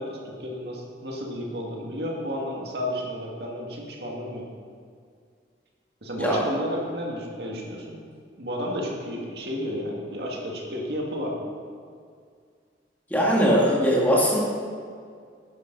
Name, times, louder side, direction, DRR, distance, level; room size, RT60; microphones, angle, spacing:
voice 1, 0.0-4.4 6.0-8.0 8.4-11.3, equal, 65° right, -1 dB, 2.1 m, -32 dB
voice 2, 13.1-14.4, equal, 10° left, -5 dB, 2.0 m, -20 dB
11.0 x 11.0 x 4.0 m, 2.2 s
head